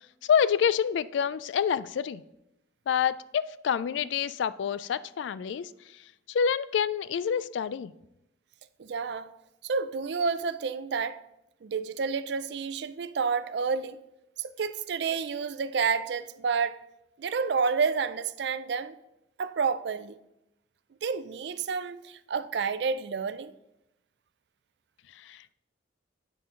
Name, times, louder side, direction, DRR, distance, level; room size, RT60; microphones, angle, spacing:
voice 1, 0.2-2.2 2.9-5.7 6.3-7.9 25.2-25.5, left 7 dB, 75° left, 0.3 m, -27 dB
voice 2, 8.8-9.3 9.7-11.2 11.6-14.0 14.4-16.8 17.2-18.9 19.4-20.1 21.0-23.5, right 5 dB, 65° right, 0.4 m, -29 dB
8.5 x 6.7 x 3.8 m
head